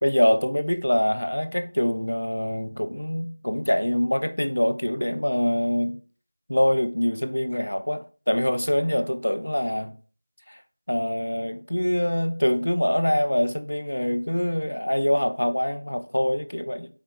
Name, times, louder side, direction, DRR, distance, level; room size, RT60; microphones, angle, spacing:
voice 1, 0.0-6.0 6.5-9.9 10.5-10.6 10.9-16.9, equal, 80° left, 0.4 m, -24 dB
4.4 x 2.3 x 3.6 m
figure-of-eight pair, 180°, 0 cm